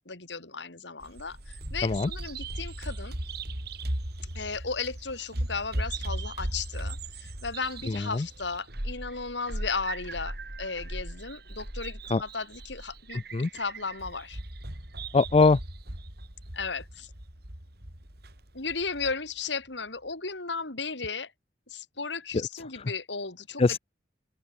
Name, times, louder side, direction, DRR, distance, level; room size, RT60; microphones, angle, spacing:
voice 1, 0.0-3.1 4.3-14.4 16.5-17.1 18.5-21.3 21.7-23.6, left 4 dB, 75° left, 3.3 m, -35 dB
Bird vocalization bird call bird song, 1.0-19.1, right 1 dB, 60° right, 4.8 m, -38 dB
voice 2, 7.9-8.3 12.1-12.2 13.3-13.5 15.1-15.6 22.3-22.5 22.7-22.8 23.6-23.8, left 3 dB, 35° left, 0.4 m, -22 dB
open air
head